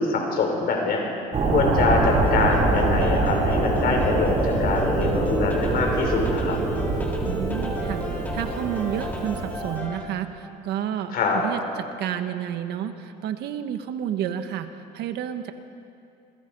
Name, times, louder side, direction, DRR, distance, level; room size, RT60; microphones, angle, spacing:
voice 1, 0.0-6.6 11.1-11.4, left 4 dB, 65° left, 1 dB, 6.1 m, -25 dB
sound 1, 1.3-9.8, right 2 dB, 40° right, 6.6 m, -24 dB
sound 2, 2.2-10.0, left 1 dB, 10° left, 3.7 m, -39 dB
voice 2, 7.2-8.0 8.3-11.6 12.0-14.7 14.9-15.5, right 10 dB, 75° right, 8 dB, 1.5 m, -30 dB
28.0 x 22.0 x 5.5 m, 2.6 s
cardioid pair, 110°, 17 cm